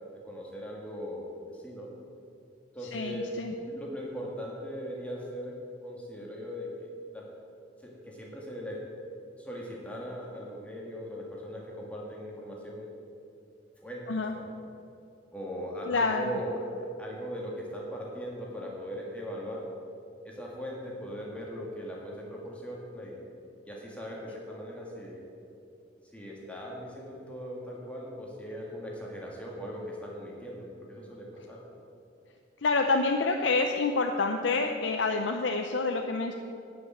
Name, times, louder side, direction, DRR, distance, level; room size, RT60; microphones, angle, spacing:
voice 1, 0.2-1.3 1.5-1.9 2.7-3.4 3.7-5.5 5.8-7.2 7.8-8.8 9.4-12.9 13.8-14.5 15.3-16.5 17.0-19.7 20.2-23.2 23.7-25.2 26.1-31.6, equal, 5° left, -3 dB, 1.8 m, -39 dB
voice 2, 2.9-3.5 14.1-14.3 15.9-16.3 32.6-36.3, left 3 dB, 90° left, 3 dB, 0.7 m, -27 dB
11.0 x 6.1 x 8.6 m, 2.5 s
head